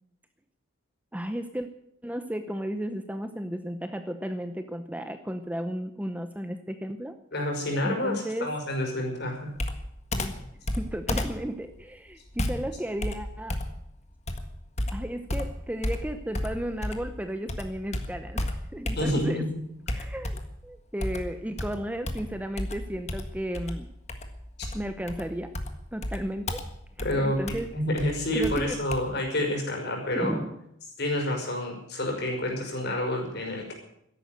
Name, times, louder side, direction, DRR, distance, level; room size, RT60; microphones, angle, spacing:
voice 1, 1.1-1.7 2.0-7.2 7.8-8.5 10.1-10.3 10.8-13.6 14.9-19.5 19.9-23.9 24.7-25.5 25.9-26.6 27.0-27.7 28.0-28.8 30.1-30.5, equal, 5° right, 8 dB, 0.7 m, -34 dB
voice 2, 7.3-9.6 19.0-19.6 27.0-30.4 31.0-33.7, left 1 dB, 50° left, 1 dB, 5.6 m, -29 dB
Computer keyboard, 9.6-17.2 17.5-19.4 19.9-20.6 21.0-29.0, left 1 dB, 30° left, 1.6 m, -33 dB
13.5 x 11.0 x 9.3 m, 0.77 s
head